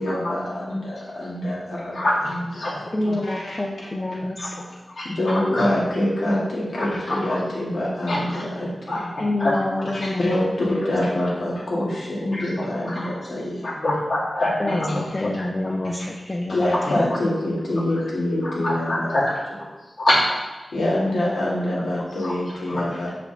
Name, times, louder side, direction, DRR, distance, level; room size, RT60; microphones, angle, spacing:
voice 1, 0.0-2.0 2.3-2.4 2.7-3.6 5.0-8.7 9.0-9.1 9.9-13.7 16.5-19.1 20.7-23.1, left 1 dB, 85° left, -6 dB, 1.8 m, -25 dB
voice 2, 1.9-2.8 4.2-4.5 4.9-5.7 6.8-7.4 8.1-9.0 9.4-10.1 12.3-13.1 13.6-15.1 16.8-17.0 17.8-17.9 18.4-19.4 19.8-20.3 20.6-20.7 22.2-22.3 22.7-22.8, left 1 dB, 60° left, -7 dB, 2.0 m, -26 dB
voice 3, 2.9-4.7 9.2-10.6 11.1-11.2 14.6-16.8 17.0-17.1, left 1 dB, 25° left, 0 dB, 0.4 m, -27 dB
5.8 x 4.9 x 3.3 m, 1.1 s
wide cardioid pair, 125°, 0 cm